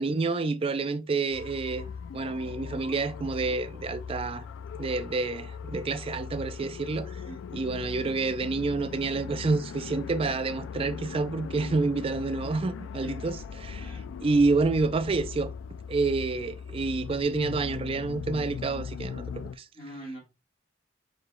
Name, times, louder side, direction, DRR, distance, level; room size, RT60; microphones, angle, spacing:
voice 1, 0.0-4.5 4.7-7.2 7.5-15.5 15.9-19.2 19.6-19.7, right 3 dB, 30° right, 0.3 m, -28 dB
sound 1, 1.3-19.6, left 6 dB, 80° left, 0.3 m, -39 dB
voice 2, 13.0-13.4 13.8-14.1 16.4-16.5 19.7-20.2, right 1 dB, 35° left, 1.5 m, -42 dB
6.7 x 3.2 x 2.2 m
head